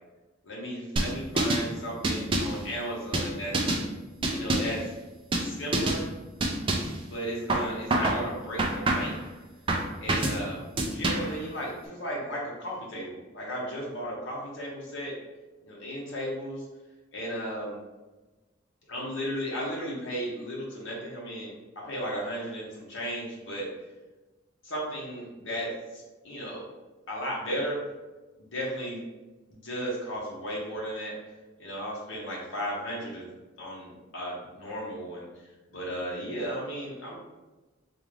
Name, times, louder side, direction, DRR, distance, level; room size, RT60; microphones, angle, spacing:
voice 1, 0.4-3.6 4.3-4.9 5.4-6.1 7.0-9.2 10.0-10.7 10.9-15.2 15.6-16.6 17.1-17.8 18.9-23.7 24.6-26.6 27.1-27.8 28.5-29.0 29.5-31.2 31.6-33.3 33.6-35.3 35.7-37.2, equal, 70° left, -4 dB, 0.9 m, -35 dB
sound 1, 1.0-1.7 2.0-2.6 3.1-3.8 4.2-4.8 5.3-5.5 5.7-6.0 6.4-7.0 7.5-8.2 8.6-9.2 9.7-10.4 10.8-11.4, right 2 dB, 25° right, 0.3 m, -26 dB
3.6 x 2.4 x 3.2 m, 1.2 s
head